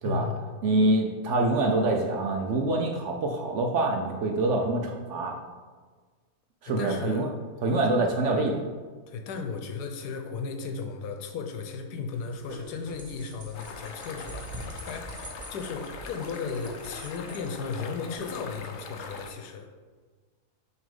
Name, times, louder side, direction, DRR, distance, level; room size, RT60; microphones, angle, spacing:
voice 1, 0.0-0.4 6.7-7.3 9.1-15.2 15.5-19.7, left 5 dB, 85° left, 5 dB, 1.3 m, -35 dB
voice 2, 0.6-5.4 6.6-7.3 7.6-8.7, right 2 dB, 65° right, 2 dB, 0.8 m, -25 dB
sound 1, 12.1-18.2, right 1 dB, 30° right, 0.9 m, -44 dB
sound 2, 13.5-19.3, left 4 dB, 70° left, 0.6 m, -42 dB
6.1 x 3.2 x 5.3 m, 1.5 s
omnidirectional pair, 1.7 m